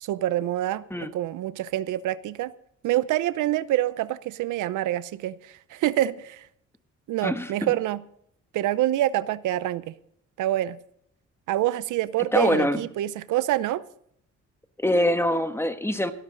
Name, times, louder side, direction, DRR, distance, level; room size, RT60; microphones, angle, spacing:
voice 1, 0.0-2.5 2.8-6.5 7.1-8.0 8.5-9.9 10.4-10.8 11.5-13.8, right 14 dB, 80° right, 16 dB, 0.7 m, -26 dB
voice 2, 7.2-7.7 12.3-12.8 14.8-16.1, left 1 dB, 10° left, 9 dB, 1.3 m, -24 dB
16.0 x 13.0 x 3.9 m, 0.69 s
cardioid pair, 90°, 30 cm